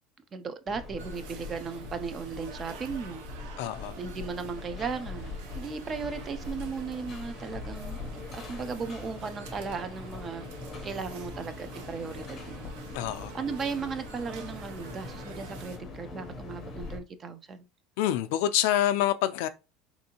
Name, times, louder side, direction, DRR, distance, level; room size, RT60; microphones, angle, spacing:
voice 1, 0.3-3.2 4.0-8.0 8.3-10.5 10.8-12.7 13.3-17.6, right 5 dB, 20° right, 0.3 m, -36 dB
sound 1, 0.7-17.0, left 3 dB, 25° left, 0.6 m, -42 dB
sound 2, 1.0-15.8, right 6 dB, 65° right, 0.6 m, -49 dB
voice 2, 3.6-4.0 12.9-13.3 18.0-19.5, left 12 dB, 65° left, 0.3 m, -26 dB
3.6 x 2.5 x 2.8 m
cardioid pair, 175°, 0 cm